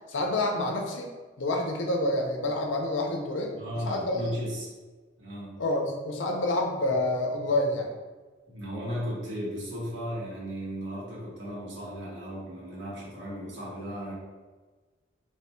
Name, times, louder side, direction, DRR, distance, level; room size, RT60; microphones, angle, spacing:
voice 1, 0.1-1.1 1.4-4.3 5.6-7.9, left 1 dB, 85° left, 2 dB, 0.6 m, -28 dB
voice 2, 3.5-4.7 5.2-5.6 8.5-14.1, equal, 80° right, -6 dB, 1.4 m, -35 dB
3.0 x 2.2 x 4.2 m, 1.3 s
head